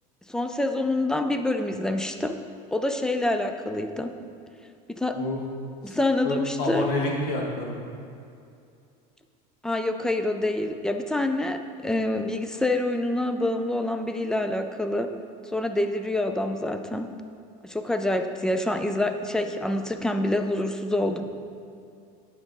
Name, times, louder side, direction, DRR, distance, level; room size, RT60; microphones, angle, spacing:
voice 1, 0.3-2.4 2.7-4.2 4.9-5.2 5.8-6.9 9.6-15.2 15.5-17.1 17.6-21.2, left 1 dB, 5° left, 7 dB, 0.3 m, -26 dB
voice 2, 6.2-7.8, left 2 dB, 55° left, -1 dB, 1.6 m, -28 dB
10.5 x 5.8 x 4.0 m, 2.5 s
cardioid pair, 145°, 19 cm